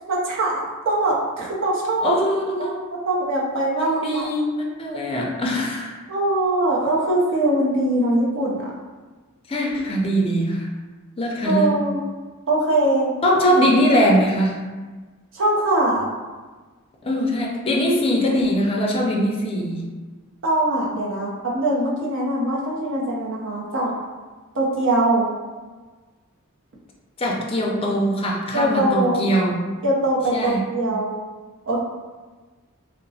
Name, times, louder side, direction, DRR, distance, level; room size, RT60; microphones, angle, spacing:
voice 1, 0.1-2.1 2.6-4.3 6.1-8.7 11.4-12.0 12.5-13.1 15.3-16.1 20.4-23.9 24.5-25.3 28.5-29.3 29.8-31.1 31.7-31.8, right 1 dB, 60° right, -4 dB, 0.7 m, -22 dB
voice 2, 2.0-2.8 3.8-5.9 9.5-10.7 11.2-11.8 13.2-14.6 17.0-19.9 27.2-29.5 30.3-30.6, equal, 25° left, -2 dB, 0.4 m, -21 dB
2.8 x 2.0 x 2.7 m, 1.3 s
head